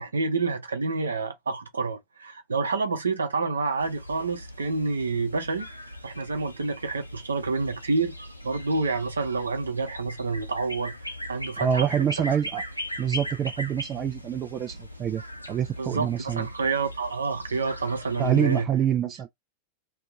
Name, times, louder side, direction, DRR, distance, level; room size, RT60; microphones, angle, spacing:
voice 1, 0.0-5.7 6.0-8.2 8.4-11.9 15.8-18.7, right 4 dB, 75° right, 0.7 m, -28 dB
sound 1, 3.8-18.6, equal, 90° left, 0.5 m, -39 dB
voice 2, 11.6-12.6 13.0-15.2 15.5-16.5 18.2-19.3, right 8 dB, 30° right, 0.4 m, -26 dB
2.6 x 2.4 x 3.6 m
figure-of-eight pair, 90°, 0 cm